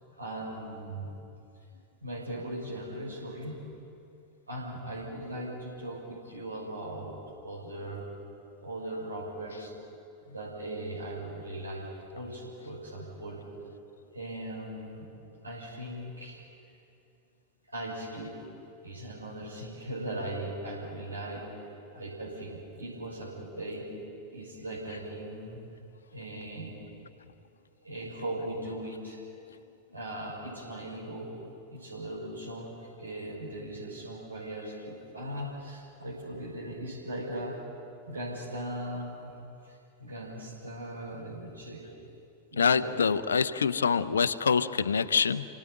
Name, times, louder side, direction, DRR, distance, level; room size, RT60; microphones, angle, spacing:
voice 1, 0.2-1.1 2.0-3.6 4.5-8.1 8.6-9.7 10.2-13.4 14.1-15.1 15.4-16.4 17.7-18.3 18.8-23.9 24.3-25.6 26.1-26.7 27.8-29.2 29.9-31.3 31.7-37.5 38.1-39.3 39.6-41.8 42.5-43.0, right 1 dB, 80° right, -6 dB, 6.4 m, -39 dB
voice 2, 42.6-45.4, left 6 dB, 70° left, 11 dB, 0.8 m, -25 dB
29.0 x 18.0 x 9.2 m, 2.7 s
figure-of-eight pair, 90°, 0 cm